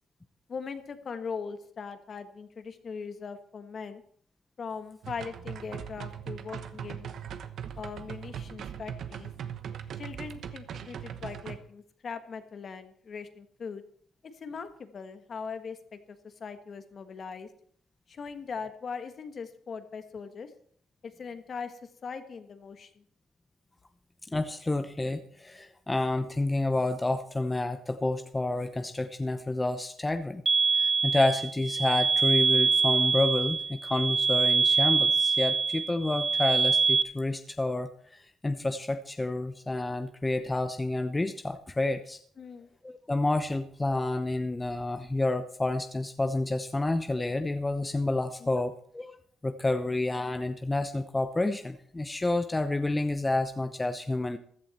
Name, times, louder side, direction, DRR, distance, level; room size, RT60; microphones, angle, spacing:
voice 1, 0.5-4.0 4.6-7.1 7.8-9.3 10.0-13.8 14.3-17.5 18.1-20.5 21.0-23.0 42.4-42.7 48.4-48.6, left 5 dB, 50° left, 9 dB, 1.4 m, -40 dB
sound 1, 5.0-11.6, right 8 dB, 65° right, 1.0 m, -40 dB
voice 2, 24.3-30.4 30.7-42.2 42.8-49.1 49.4-54.4, left 2 dB, 15° left, 8 dB, 0.8 m, -29 dB
sound 2, 30.5-37.0, right 4 dB, 25° right, 0.6 m, -25 dB
15.5 x 11.0 x 4.3 m, 0.63 s
cardioid pair, 90°, 0 cm